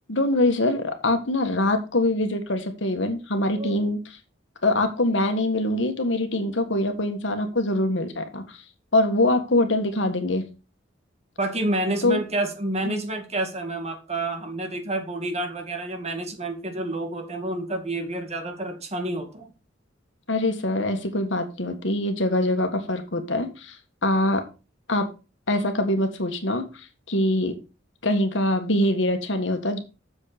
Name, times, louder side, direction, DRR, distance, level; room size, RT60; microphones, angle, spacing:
voice 1, 0.1-4.2 4.6-8.6 8.9-10.4 12.0-12.2 12.9-13.0 20.3-23.8 24.0-24.4 24.9-25.1 25.5-27.5 28.0-29.8, left 1 dB, 70° left, 6 dB, 1.7 m, -24 dB
voice 2, 11.4-19.5, right 2 dB, 35° right, 5 dB, 2.1 m, -29 dB
7.5 x 7.2 x 5.1 m, 0.31 s
head